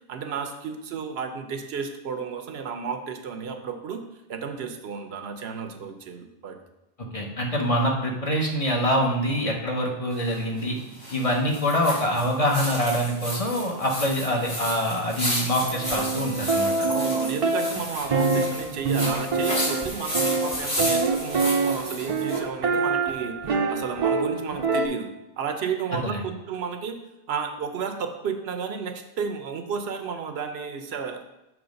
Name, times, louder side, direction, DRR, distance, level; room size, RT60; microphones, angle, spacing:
voice 1, 0.1-4.0 4.3-6.6 16.9-25.1 25.4-27.0 27.3-31.2, right 6 dB, 80° right, 6 dB, 0.9 m, -32 dB
voice 2, 7.1-10.8 11.1-16.9 25.9-26.2, equal, 35° left, 0 dB, 0.9 m, -25 dB
sound 1, 10.1-22.4, equal, 80° left, 2.9 m, -33 dB
sound 2, 15.6-24.9, right 4 dB, 45° right, 0.5 m, -26 dB
7.1 x 3.1 x 5.1 m, 0.95 s
omnidirectional pair, 1.0 m